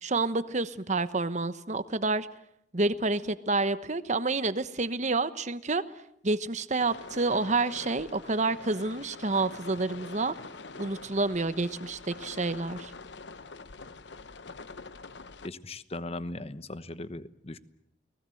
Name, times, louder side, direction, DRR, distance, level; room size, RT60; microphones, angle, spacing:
voice 1, 0.0-2.3 2.7-5.8 6.2-10.3 10.8-12.9, right 3 dB, 40° right, 13 dB, 1.1 m, -29 dB
sound 1, 6.8-15.5, left 4 dB, 70° left, 1.0 m, -45 dB
voice 2, 15.4-17.6, left 2 dB, 35° left, 14 dB, 1.1 m, -38 dB
30.0 x 19.5 x 7.8 m, 0.76 s
head